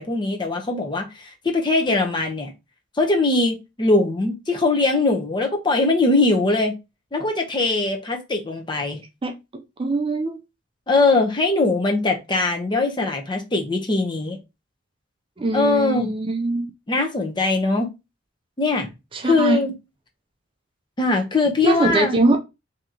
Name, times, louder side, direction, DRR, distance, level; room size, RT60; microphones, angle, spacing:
voice 1, 0.0-2.5 3.0-6.8 7.1-9.0 10.9-14.4 15.5-16.1 16.9-17.9 18.6-18.9 19.2-19.7 21.0-22.2, left 3 dB, 25° left, 0.7 m, -21 dB
voice 2, 9.8-10.4 15.4-16.7 19.1-19.6 21.6-22.4, right 2 dB, 25° right, 0.4 m, -22 dB
2.9 x 2.8 x 3.7 m
head